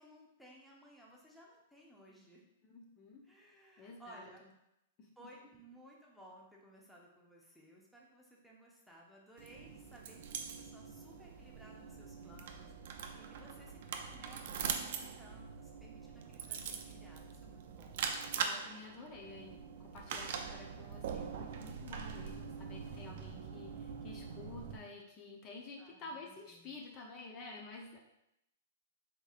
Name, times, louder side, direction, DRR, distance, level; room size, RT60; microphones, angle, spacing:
voice 1, 0.0-2.4 3.2-4.5 5.2-12.7 13.2-18.0 25.8-26.8, right 1 dB, ahead, -3 dB, 0.8 m, -59 dB
voice 2, 2.6-3.2 3.8-4.3 5.0-5.1 18.4-28.0, left 3 dB, 40° left, 0 dB, 0.7 m, -50 dB
sound 1, 9.4-24.8, right 6 dB, 60° right, 0.4 m, -43 dB
4.0 x 3.7 x 2.4 m, 0.84 s
hypercardioid pair, 120°, 0 cm